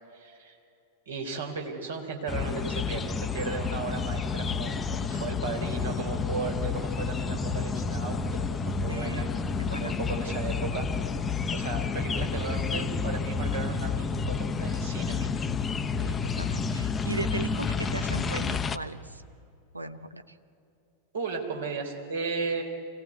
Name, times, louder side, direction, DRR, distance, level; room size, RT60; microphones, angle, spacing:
voice 1, 0.1-0.6 1.1-9.3 9.7-10.9 11.5-15.3 21.1-22.6, right 4 dB, 65° right, 2 dB, 3.7 m, -35 dB
sound 1, 2.3-18.8, left 5 dB, 20° left, 0.8 m, -30 dB
voice 2, 8.9-9.9 16.0-19.2 19.7-20.3, right 2 dB, 80° right, 11 dB, 0.9 m, -38 dB
25.0 x 17.0 x 9.5 m, 2.5 s
figure-of-eight pair, 90°, 0 cm